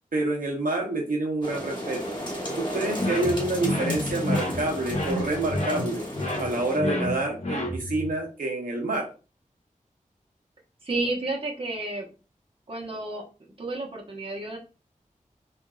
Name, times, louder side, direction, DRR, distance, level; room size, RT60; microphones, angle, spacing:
voice 1, 0.1-2.0 2.5-6.0 6.4-9.1, right 2 dB, 80° right, 0 dB, 0.8 m, -27 dB
sound 1, 1.4-6.8, equal, 35° left, 1.1 m, -34 dB
sound 2, 3.0-8.1, left 1 dB, 55° left, 0.9 m, -30 dB
voice 2, 10.8-12.1 12.7-13.2 13.6-14.6, right 2 dB, 40° right, -2 dB, 1.0 m, -31 dB
3.6 x 2.5 x 2.3 m, 0.33 s
wide cardioid pair, 70°, 14 cm